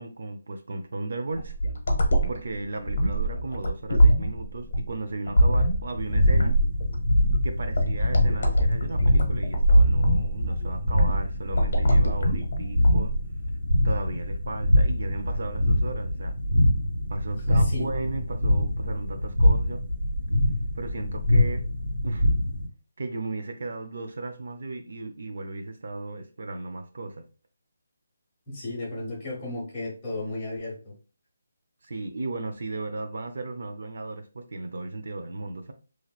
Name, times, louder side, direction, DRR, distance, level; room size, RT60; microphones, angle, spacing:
voice 1, 0.0-1.5 2.3-6.6 7.4-13.1 13.8-16.3 17.1-19.8 20.8-21.6 22.0-22.3 23.0-27.2 31.8-35.7, right 3 dB, 55° right, 0.4 m, -35 dB
sound 1, 1.4-13.3, equal, 55° left, 0.8 m, -23 dB
sound 2, 6.0-22.7, left 1 dB, 85° right, 1.6 m, -24 dB
voice 2, 17.5-17.9 28.5-30.9, left 1 dB, 15° left, 1.1 m, -33 dB
3.0 x 2.9 x 2.3 m
hypercardioid pair, 175°, 0 cm